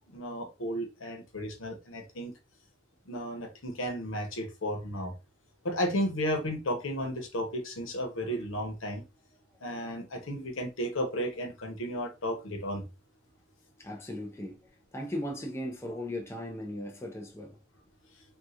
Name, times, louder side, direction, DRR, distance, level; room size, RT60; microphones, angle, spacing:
voice 1, 0.0-2.3 3.0-5.1 5.6-9.0 9.6-12.9, equal, 85° left, 0.9 m, -33 dB
voice 2, 13.8-14.6 14.9-17.6, left 1 dB, 15° left, 0.5 m, -37 dB
3.7 x 2.4 x 2.8 m
head